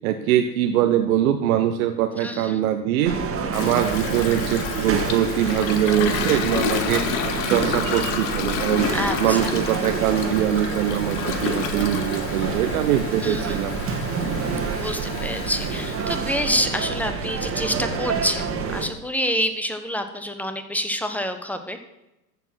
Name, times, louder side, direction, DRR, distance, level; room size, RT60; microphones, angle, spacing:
voice 1, 0.0-3.1 3.5-7.0 7.5-8.9 9.2-13.8, right 11 dB, 60° right, 6 dB, 1.1 m, -22 dB
voice 2, 2.1-2.6 8.9-9.5 13.1-13.6 14.8-21.8, left 1 dB, 5° left, 7 dB, 1.1 m, -27 dB
sound 1, 3.0-18.9, right 5 dB, 25° right, 1.9 m, -28 dB
Toilet flush, 3.5-17.0, left 8 dB, 40° left, 1.5 m, -31 dB
14.0 x 7.0 x 6.1 m, 0.94 s
hypercardioid pair, 105°, 49 cm